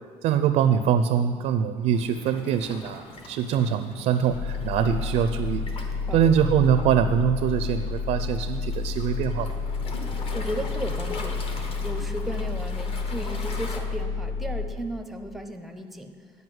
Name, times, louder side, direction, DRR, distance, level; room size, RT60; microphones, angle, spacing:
voice 1, 0.2-5.6 6.1-9.6, right 8 dB, 70° right, 9 dB, 0.4 m, -23 dB
Waves surf, 1.9-13.8, left 3 dB, 45° left, 1.0 m, -42 dB
sound 1, 4.3-14.7, left 4 dB, 75° left, 2.5 m, -30 dB
voice 2, 10.3-11.5 11.8-16.1, right 1 dB, ahead, 6 dB, 0.5 m, -35 dB
9.3 x 5.3 x 7.8 m, 2.1 s
cardioid pair, 160°, 13 cm